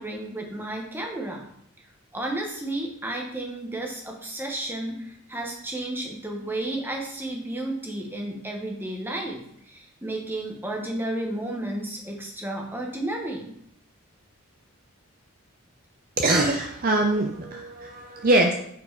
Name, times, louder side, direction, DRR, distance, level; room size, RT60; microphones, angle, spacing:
voice 1, 0.0-1.4 2.1-13.5, right 1 dB, 10° right, 0 dB, 1.0 m, -32 dB
voice 2, 16.2-18.5, right 2 dB, 40° right, 4 dB, 0.5 m, -23 dB
6.4 x 4.6 x 4.5 m, 0.71 s
head